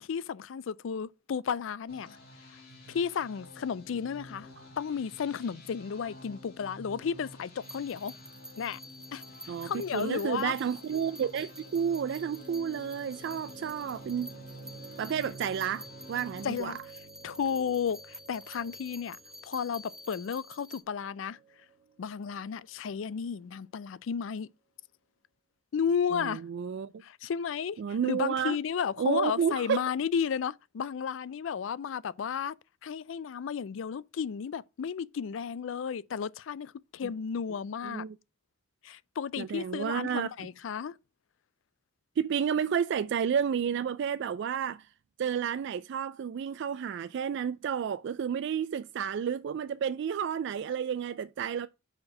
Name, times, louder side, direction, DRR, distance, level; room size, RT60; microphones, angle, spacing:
voice 1, 0.0-2.2 2.9-4.5 4.8-8.1 8.6-8.8 9.1-9.2 9.6-10.5 16.4-16.8 17.2-19.2 19.4-21.4 22.0-24.5 25.7-26.4 27.0-32.5 32.8-38.0 38.8-40.9, left 7 dB, 75° left, 0.4 m, -33 dB
sound 1, 1.9-16.6, equal, 50° left, 2.2 m, -50 dB
sound 2, 7.6-20.8, equal, 5° right, 0.5 m, -49 dB
voice 2, 9.5-14.3 15.0-16.8 26.1-26.9 27.8-28.6 29.0-29.8 37.0-37.1 37.8-38.2 39.4-40.3 42.2-44.9 45.2-51.7, right 7 dB, 65° right, 0.3 m, -31 dB
sound 3, 11.2-23.2, right 4 dB, 40° right, 1.3 m, -54 dB
4.9 x 4.3 x 6.0 m
head